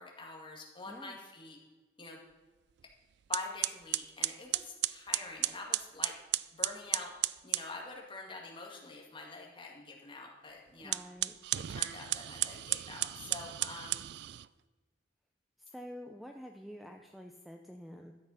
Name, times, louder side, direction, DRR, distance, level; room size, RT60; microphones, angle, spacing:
voice 1, 0.0-1.6 2.0-2.2 3.3-6.2 6.5-7.1 7.4-11.0 11.5-14.1, left 3 dB, 25° left, 0 dB, 2.1 m, -46 dB
sound 1, 2.8-2.9 3.3-7.7 10.8-14.5, right 16 dB, 60° right, 0.3 m, -34 dB
voice 2, 10.8-11.3 15.6-18.1, equal, ahead, 4 dB, 0.5 m, -48 dB
12.5 x 7.8 x 5.7 m, 1.3 s
head